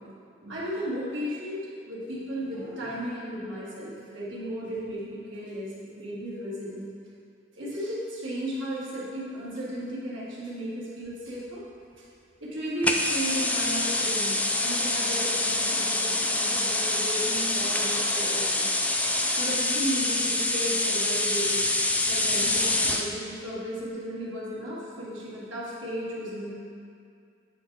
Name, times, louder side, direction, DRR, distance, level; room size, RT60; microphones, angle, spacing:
voice 1, 0.4-6.9 7.6-11.6 12.0-12.1 12.4-18.8 19.0-21.6 22.1-26.5, equal, 80° right, -8 dB, 1.7 m, -35 dB
sound 1, 12.8-23.1, left 2 dB, 10° left, 0.3 m, -26 dB
8.5 x 3.4 x 4.6 m, 2.3 s
head